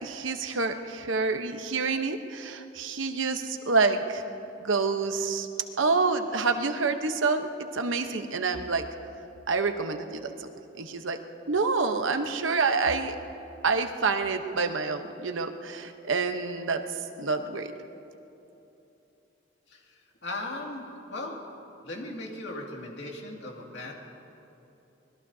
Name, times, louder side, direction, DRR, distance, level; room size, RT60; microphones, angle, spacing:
voice 1, 0.0-4.2 4.6-5.5 5.8-7.5 7.7-8.8 9.5-10.5 10.8-11.2 11.5-13.2 13.6-16.8 17.2-17.7, right 4 dB, 90° right, 6 dB, 1.0 m, -27 dB
voice 2, 19.7-21.4 21.8-23.9, left 2 dB, 65° left, -1 dB, 2.3 m, -38 dB
25.0 x 20.5 x 2.8 m, 3.0 s
head